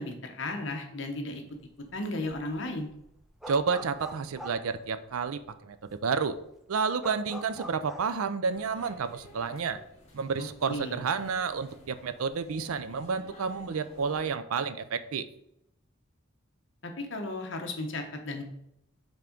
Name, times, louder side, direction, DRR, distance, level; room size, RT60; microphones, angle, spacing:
voice 1, 0.0-1.4 1.9-2.9 10.4-11.0 16.8-18.4, left 2 dB, 55° left, 3 dB, 1.0 m, -35 dB
sound 1, 1.6-1.9 2.2-5.4 5.9-6.0 6.2-8.1, right 1 dB, ahead, 0.5 m, -44 dB
voice 2, 3.5-6.4 6.7-9.8 10.1-15.3, right 5 dB, 80° right, 12 dB, 0.5 m, -30 dB
sound 2, 8.5-14.3, left 1 dB, 30° left, 1.3 m, -53 dB
5.7 x 3.7 x 5.1 m, 0.80 s
head